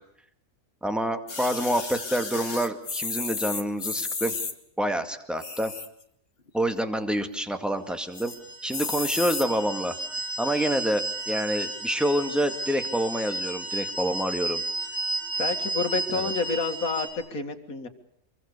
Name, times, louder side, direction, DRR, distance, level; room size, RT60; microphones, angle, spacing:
voice 1, 0.8-4.4 4.8-5.7 6.5-8.3 8.6-10.0 10.4-14.6 16.1-16.3, equal, ahead, 7 dB, 2.0 m, -27 dB
sound 1, 1.3-4.5 5.3-6.0 6.5-6.6 6.7-6.8 7.2-7.6 8.1-8.4 8.7-9.5 10.2-10.3, left 4 dB, 40° left, 2.0 m, -33 dB
sound 2, 8.1-17.1, right 2 dB, 50° right, 6.4 m, -33 dB
voice 2, 15.4-17.9, left 4 dB, 70° left, 6 dB, 2.6 m, -29 dB
26.0 x 23.5 x 6.8 m, 0.69 s
omnidirectional pair, 1.5 m